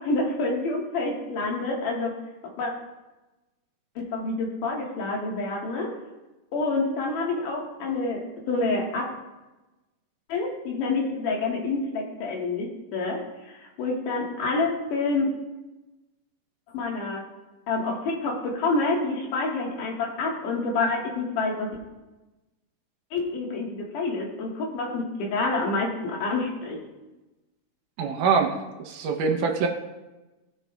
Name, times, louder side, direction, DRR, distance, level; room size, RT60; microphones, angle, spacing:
voice 1, 0.0-2.2 2.6-2.7 4.0-5.9 6.5-9.1 10.3-15.3 16.7-17.2 17.7-21.7 23.1-26.8, left 3 dB, 70° left, -1 dB, 2.9 m, -28 dB
voice 2, 28.0-29.7, right 5 dB, 75° right, 3 dB, 2.3 m, -24 dB
18.0 x 7.0 x 2.2 m, 1.1 s
omnidirectional pair, 4.0 m